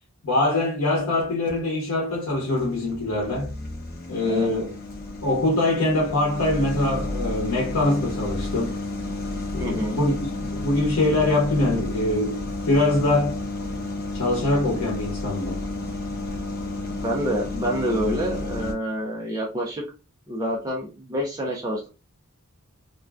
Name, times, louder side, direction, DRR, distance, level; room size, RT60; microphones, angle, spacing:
voice 1, 0.2-3.5 4.1-4.7 5.2-8.7 9.5-13.4 14.1-15.6, left 2 dB, 85° left, 0.8 m, -23 dB
sound 1, 1.0-1.6 2.1-18.7, left 2 dB, 45° left, 0.6 m, -31 dB
voice 2, 4.2-4.5 9.6-10.0 17.0-19.8 20.3-21.9, equal, 15° right, 0.4 m, -27 dB
2.5 x 2.2 x 2.2 m
head